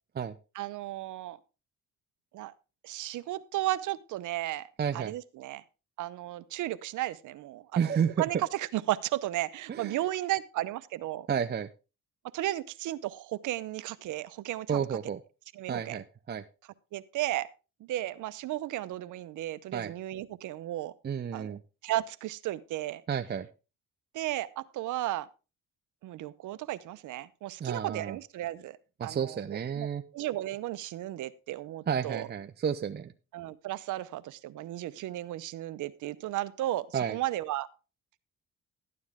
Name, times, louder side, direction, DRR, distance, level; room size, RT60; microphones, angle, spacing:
voice 1, 0.5-1.4 2.3-2.5 2.8-4.7 4.9-5.6 6.0-11.3 12.3-14.8 15.5-16.0 16.9-17.5 17.8-20.9 21.3-21.6 21.8-23.0 24.1-25.3 26.0-28.8 29.0-29.4 29.8-29.9 30.1-32.3 33.3-37.7, right 15 dB, 80° right, 15 dB, 0.8 m, -34 dB
voice 2, 4.8-5.1 7.8-8.2 9.7-10.0 11.3-11.7 14.7-15.2 15.7-16.4 19.7-19.9 21.0-21.6 23.1-23.5 27.6-28.2 29.0-30.0 31.9-33.1 36.9-37.2, right 7 dB, 35° right, 8 dB, 0.6 m, -31 dB
13.0 x 9.5 x 3.6 m, 0.31 s
cardioid pair, 90°, 30 cm